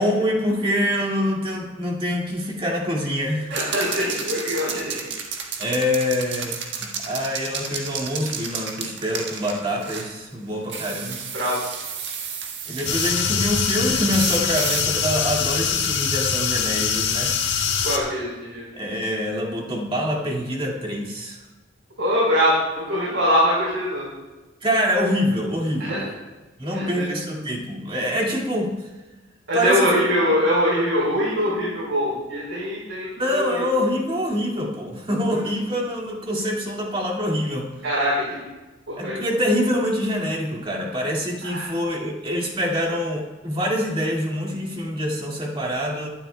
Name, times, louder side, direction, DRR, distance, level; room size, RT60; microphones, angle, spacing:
voice 1, 0.0-3.5 5.6-11.2 12.7-17.3 18.7-21.4 24.6-26.0 26.6-28.8 29.5-29.9 33.2-37.7 39.0-46.1, equal, 25° right, -1 dB, 2.2 m, -25 dB
sound 1, 3.5-10.1 10.7-13.2 14.1-14.9, right 6 dB, 60° right, 1.6 m, -32 dB
voice 2, 3.5-5.0 11.3-11.6 17.8-18.6 22.0-24.1 25.9-26.0 26.7-27.1 29.5-33.6 35.3-35.4 37.8-38.4 38.9-39.2 41.4-41.7, equal, 80° right, -6 dB, 4.2 m, -23 dB
sound 2, 12.8-18.0, left 6 dB, 60° left, 1.7 m, -23 dB
23.5 x 12.0 x 2.2 m, 1.2 s
head